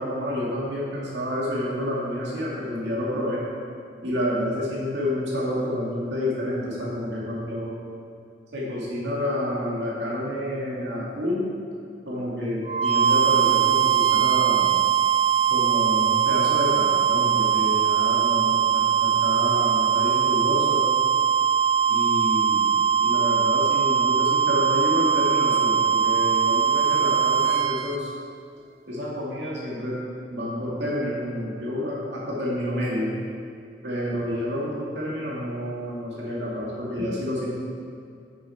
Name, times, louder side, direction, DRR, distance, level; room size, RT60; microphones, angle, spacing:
voice 1, 0.0-3.4 4.0-7.7 8.5-11.5 12.1-14.7 15.5-20.9 21.9-28.1 28.9-30.0 30.3-33.2 33.8-37.5, left 1 dB, 80° right, -5 dB, 2.2 m, -29 dB
sound 1, 12.7-28.0, right 8 dB, 35° right, 0.3 m, -21 dB
9.7 x 7.4 x 4.6 m, 2.4 s
head